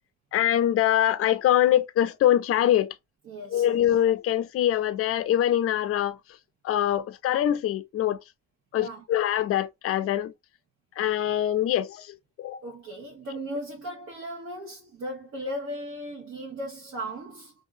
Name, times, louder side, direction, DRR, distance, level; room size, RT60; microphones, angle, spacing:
voice 1, 0.3-2.9 3.5-6.2 6.6-8.2 8.7-10.3 11.0-12.0 12.4-12.5, left 11 dB, 50° left, 0.4 m, -23 dB
voice 2, 3.2-3.8 8.8-9.1 12.4-17.5, equal, 65° right, 1.2 m, -37 dB
2.7 x 2.7 x 2.6 m
cardioid pair, 90°, 30 cm